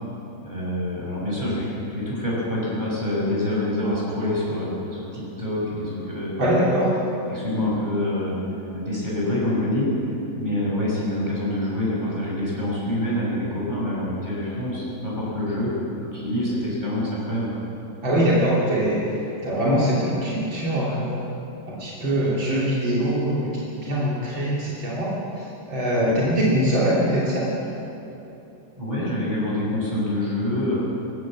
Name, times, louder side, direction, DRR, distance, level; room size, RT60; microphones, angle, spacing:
voice 1, 0.4-1.7 1.9-6.3 7.3-8.4 8.7-15.7 16.0-17.5 26.0-26.1 28.8-30.7, left 1 dB, 20° right, -7 dB, 6.0 m, -26 dB
voice 2, 6.4-6.9 18.0-21.2 21.6-27.5, equal, 75° right, -7 dB, 4.0 m, -23 dB
20.0 x 17.5 x 7.5 m, 3.0 s
omnidirectional pair, 2.1 m